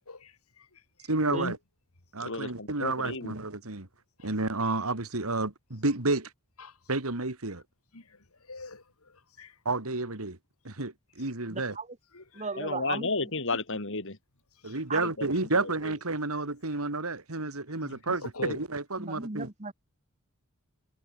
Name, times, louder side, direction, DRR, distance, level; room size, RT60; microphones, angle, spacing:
voice 1, 0.1-1.6 4.2-4.3 6.6-6.8 7.9-9.6 12.1-12.5 14.6-14.8 18.2-18.6, left 2 dB, 75° left, 3.4 m, -41 dB
voice 2, 1.1-1.6 2.1-3.9 4.2-6.3 6.9-7.6 9.6-10.4 10.6-11.8 14.6-19.5, right 3 dB, 70° right, 2.7 m, -30 dB
voice 3, 2.2-3.4 12.6-14.2 15.0-15.9 17.8-18.0, left 3 dB, 60° left, 4.0 m, -33 dB
voice 4, 11.5-11.9 12.3-13.1 14.9-15.1 19.0-19.7, right 4 dB, 30° right, 1.6 m, -36 dB
head